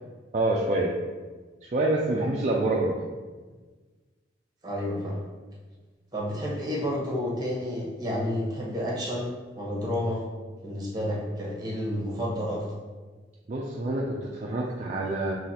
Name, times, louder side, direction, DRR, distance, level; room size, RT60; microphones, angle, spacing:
voice 1, 0.3-0.9 1.6-3.0 13.5-15.3, right 2 dB, 40° right, -2 dB, 0.4 m, -26 dB
voice 2, 4.6-5.1 6.1-10.2 10.6-12.6, left 1 dB, 20° right, -4 dB, 1.0 m, -30 dB
5.7 x 3.0 x 2.8 m, 1.4 s
head